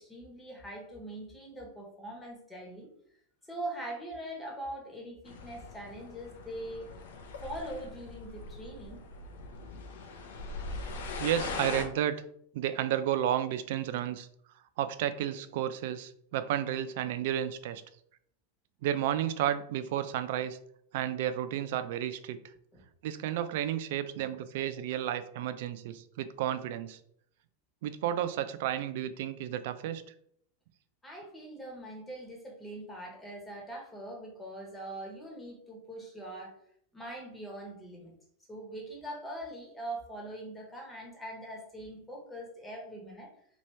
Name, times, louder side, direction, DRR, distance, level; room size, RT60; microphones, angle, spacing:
voice 1, 0.0-2.9 3.5-6.9 7.4-9.0 22.7-22.8 31.0-36.5 36.9-38.1 38.5-43.3, right 1 dB, 10° left, -1 dB, 1.1 m, -42 dB
sound 1, 5.3-11.9, left 3 dB, 75° left, 0.6 m, -41 dB
voice 2, 11.2-12.2 12.5-14.3 14.8-17.8 18.8-20.6 20.9-22.4 23.0-27.0 27.8-30.0, right 11 dB, 65° right, 12 dB, 0.3 m, -32 dB
3.0 x 2.7 x 3.2 m, 0.69 s
hypercardioid pair, 110°, 0 cm